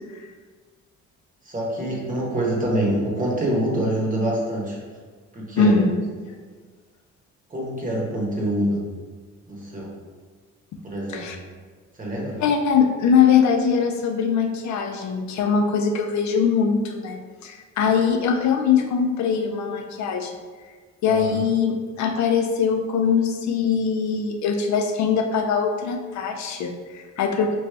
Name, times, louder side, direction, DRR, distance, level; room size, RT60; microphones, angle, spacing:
voice 1, 1.4-4.8 5.3-5.8 7.5-8.8 9.4-9.9 10.8-11.3 12.0-12.4 21.1-21.4, right 1 dB, 25° right, -3 dB, 1.1 m, -25 dB
voice 2, 5.5-6.1 7.7-7.8 11.1-11.4 12.4-20.3 21.0-27.6, left 6 dB, 65° left, 3 dB, 0.5 m, -22 dB
3.0 x 2.8 x 3.4 m, 1.5 s
cardioid pair, 90°, 30 cm